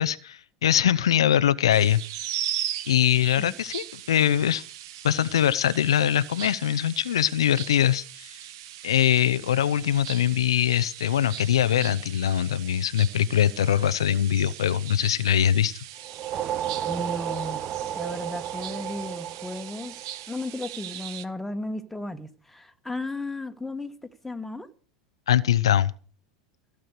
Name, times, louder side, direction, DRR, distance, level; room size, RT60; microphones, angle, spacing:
voice 1, 0.0-2.0 2.9-4.6 5.0-8.4 8.8-15.8 25.3-25.9, left 10 dB, 75° left, 0.5 m, -22 dB
sound 1, 1.7-21.2, right 12 dB, 60° right, 0.9 m, -39 dB
sound 2, 16.0-20.6, right 11 dB, 40° right, 0.6 m, -32 dB
voice 2, 16.8-17.6 17.9-19.9 20.3-24.0 24.2-24.7, left 2 dB, 5° left, 1.5 m, -34 dB
16.0 x 7.7 x 6.6 m
figure-of-eight pair, 80°, 3 cm